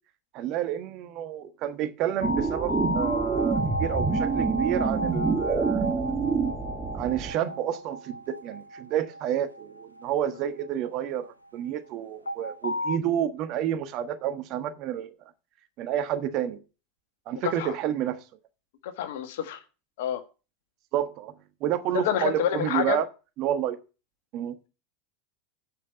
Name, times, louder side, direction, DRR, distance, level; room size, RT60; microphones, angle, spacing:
voice 1, 0.3-6.1 6.9-15.1 15.8-16.6 17.3-18.2 20.9-21.3 21.6-23.1 23.4-23.8 24.3-24.6, right 10 dB, 45° right, 1.3 m, -29 dB
sound 1, 2.2-11.3 12.3-13.0, equal, 85° left, 0.8 m, -34 dB
sound 2, 2.2-7.3, right 4 dB, 20° right, 1.7 m, -27 dB
voice 2, 17.3-17.7 18.8-19.6 20.0-20.2 21.9-23.0, left 10 dB, 60° left, 1.6 m, -28 dB
7.9 x 6.3 x 8.1 m
figure-of-eight pair, 85°, 0 cm